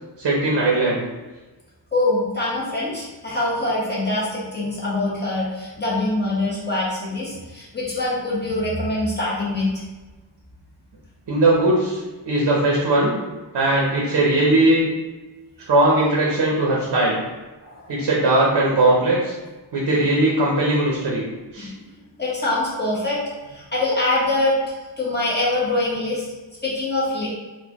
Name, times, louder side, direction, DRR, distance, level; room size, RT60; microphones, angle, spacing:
voice 1, 0.2-1.0 11.3-13.1 13.5-14.8 15.7-17.2 17.9-19.3 19.7-21.2 21.5-21.7, right 2 dB, 60° right, -4 dB, 0.7 m, -19 dB
voice 2, 1.9-9.8 17.6-17.9 21.6-21.7 22.2-23.2 23.5-24.6 25.0-26.2 26.6-27.3, left 2 dB, 20° left, -8 dB, 1.0 m, -24 dB
3.9 x 2.2 x 2.8 m, 1.2 s
wide cardioid pair, 175°, 46 cm